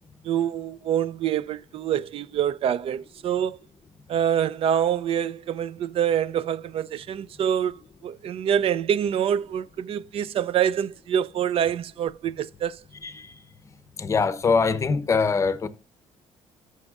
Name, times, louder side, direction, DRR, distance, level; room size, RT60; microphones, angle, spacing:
voice 1, 0.2-3.6 4.1-12.8, right 9 dB, 55° right, 0.4 m, -26 dB
voice 2, 14.0-15.7, left 5 dB, 25° left, 0.8 m, -23 dB
15.0 x 6.4 x 2.4 m
cardioid pair, 130°, 12 cm